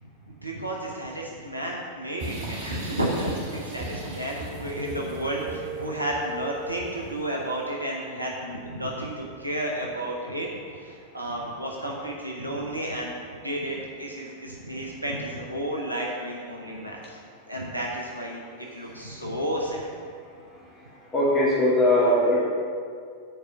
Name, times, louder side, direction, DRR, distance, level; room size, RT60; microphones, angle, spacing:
voice 1, 0.0-17.2 17.5-19.9, right 1 dB, 85° right, -2 dB, 0.9 m, -32 dB
sound 1, 2.2-7.3, right 1 dB, 55° right, 2.3 m, -38 dB
voice 2, 4.2-6.3 6.6-6.9 21.1-22.4, left 1 dB, 25° left, -6 dB, 2.4 m, -24 dB
7.8 x 4.9 x 7.1 m, 2.2 s
figure-of-eight pair, 90°, 0 cm